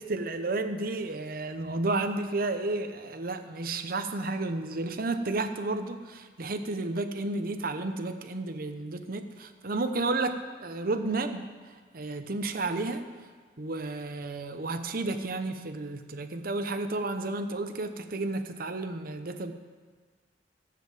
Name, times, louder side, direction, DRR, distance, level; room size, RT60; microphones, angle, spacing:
voice 1, 0.0-11.5 11.9-13.1 13.6-19.5, right 2 dB, 55° right, 8 dB, 0.9 m, -32 dB
12.5 x 7.6 x 7.5 m, 1.5 s
head